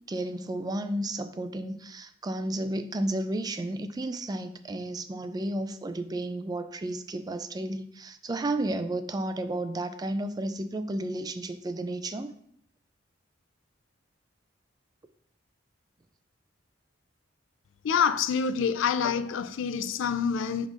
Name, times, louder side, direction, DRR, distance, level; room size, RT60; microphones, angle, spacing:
voice 1, 0.1-12.3, right 1 dB, 20° right, 0.3 m, -32 dB
voice 2, 17.8-20.7, left 6 dB, 85° left, 0.4 m, -27 dB
10.0 x 3.9 x 2.5 m
head